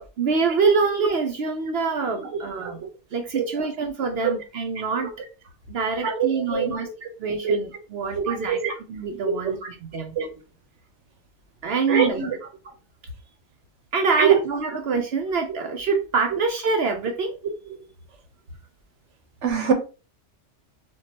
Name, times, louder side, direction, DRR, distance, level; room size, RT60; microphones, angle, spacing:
voice 1, 0.0-2.8 3.1-5.1 5.7-6.9 7.2-10.1 11.6-12.3 13.9-17.3, right 4 dB, 65° right, 0.8 m, -25 dB
voice 2, 6.0-7.1 7.4-7.6 8.1-8.7 10.2-10.3 11.9-12.2 14.2-14.4 19.4-19.7, right 7 dB, 90° right, 1.2 m, -23 dB
4.5 x 2.4 x 2.8 m
omnidirectional pair, 1.2 m